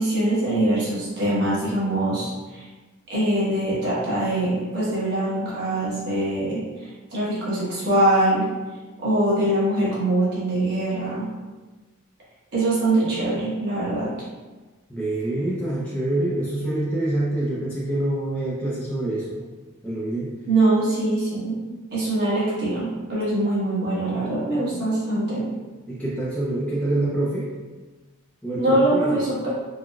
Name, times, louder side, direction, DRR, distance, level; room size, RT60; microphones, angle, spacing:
voice 1, 0.0-2.7 3.1-8.4 9.0-11.3 12.5-14.1 20.5-21.6 21.9-25.5 28.5-29.5, right 1 dB, 50° right, -8 dB, 1.1 m, -23 dB
voice 2, 14.9-19.4 19.8-20.3 25.9-27.5 28.4-29.2, right 1 dB, 5° left, -9 dB, 0.4 m, -26 dB
3.8 x 2.1 x 2.3 m, 1.3 s
head